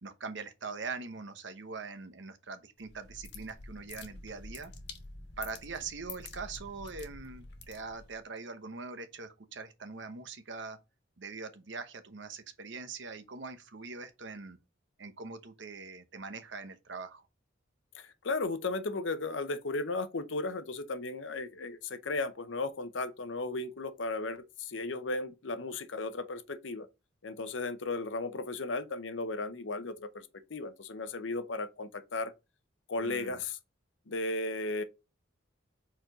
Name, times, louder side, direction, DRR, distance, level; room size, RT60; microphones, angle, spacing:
voice 1, 0.0-4.7 5.4-10.8 11.2-14.6 15.0-17.2 33.0-33.4, right 4 dB, 65° right, 0.9 m, -42 dB
sound 1, 2.8-8.2, left 3 dB, 60° left, 1.4 m, -48 dB
voice 2, 17.9-26.9 27.2-32.3 32.9-33.6 34.1-34.8, left 3 dB, 75° left, 0.8 m, -35 dB
4.5 x 4.3 x 5.0 m
head